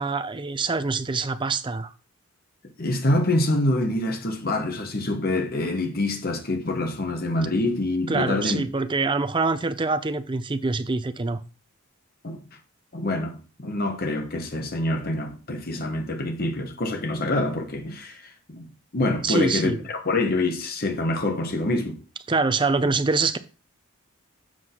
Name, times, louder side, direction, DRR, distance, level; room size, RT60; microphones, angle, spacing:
voice 1, 0.0-1.9 8.1-11.4 19.2-19.8 22.3-23.4, right 3 dB, 20° right, 0.5 m, -25 dB
voice 2, 2.8-8.6 12.2-12.4 12.9-18.7 18.9-22.0, left 2 dB, 45° left, 1.3 m, -26 dB
7.6 x 6.3 x 3.8 m
head